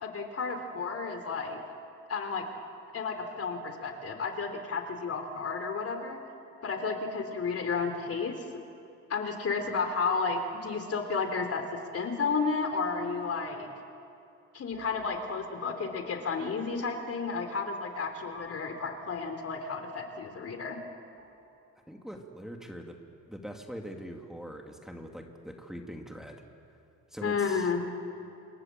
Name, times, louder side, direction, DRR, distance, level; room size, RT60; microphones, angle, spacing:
voice 1, 0.0-1.6 2.1-2.5 2.9-6.2 6.6-8.3 9.1-11.6 11.9-13.7 14.5-20.8 27.2-27.8, left 4 dB, 50° left, 6 dB, 3.7 m, -32 dB
sound 1, 14.7-22.3, equal, 50° right, 7.3 m, -54 dB
voice 2, 21.9-23.0 23.3-26.4 27.1-27.7, equal, ahead, 2 dB, 2.7 m, -42 dB
27.5 x 27.0 x 7.7 m, 2.6 s
cardioid pair, 90°, 30 cm